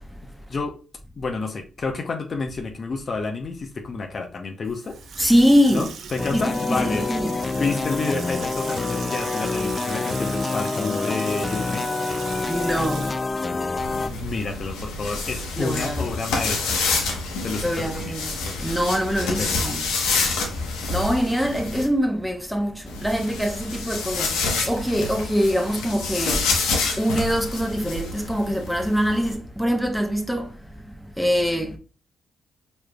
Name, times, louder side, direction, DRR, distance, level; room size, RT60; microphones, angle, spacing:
voice 1, 1.2-5.0 5.7-7.1 7.5-11.9 13.5-13.6 14.1-16.9 17.4-18.2 19.4-19.6, left 4 dB, 50° left, 0.7 m, -30 dB
Water tap faucet / Sink (filling or washing), 4.6-14.4 14.7-14.8, right 6 dB, 70° right, 0.6 m, -39 dB
voice 2, 5.2-5.9 6.3-7.4 12.5-13.1 15.6-16.1 17.6-18.3 18.6-19.8 20.2-20.3 20.8-26.5 27.0-30.5 31.2-31.8, equal, 5° right, 1.0 m, -23 dB
sound 1, 6.2-14.1, left 3 dB, 35° left, 0.3 m, -27 dB
sound 2, 13.8-21.9 22.9-29.3, left 3 dB, 85° left, 0.8 m, -28 dB
4.8 x 3.2 x 2.2 m
hypercardioid pair, 50°, 0 cm